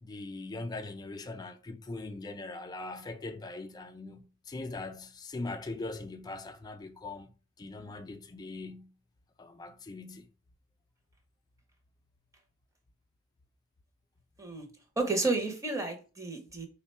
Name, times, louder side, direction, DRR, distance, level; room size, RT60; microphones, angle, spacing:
voice 1, 0.0-7.3 7.6-8.9 9.4-10.3, left 2 dB, 20° left, 0.3 m, -41 dB
voice 2, 15.0-16.7, right 3 dB, 15° right, 0.7 m, -31 dB
3.6 x 2.1 x 4.2 m
head